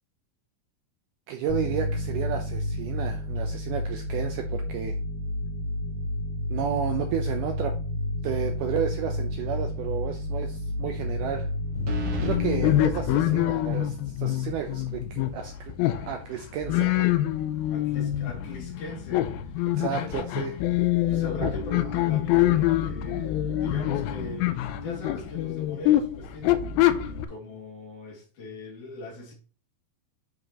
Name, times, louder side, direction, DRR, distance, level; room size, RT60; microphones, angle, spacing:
voice 1, 1.3-5.0 6.5-7.7 8.2-11.5 12.2-15.7 16.1-17.1 19.7-20.5 21.4-21.5, right 9 dB, 80° right, 1.9 m, -32 dB
sound 1, 1.5-14.7, left 1 dB, 25° left, 1.7 m, -31 dB
sound 2, 8.9-9.2 9.6-9.7 11.9-12.4, equal, 50° right, 2.1 m, -33 dB
sound 3, 11.7-27.3, left 13 dB, 80° left, 2.3 m, -25 dB
voice 2, 17.6-20.2 21.1-29.3, left 1 dB, 55° left, 3.6 m, -41 dB
11.0 x 4.9 x 2.9 m
omnidirectional pair, 4.4 m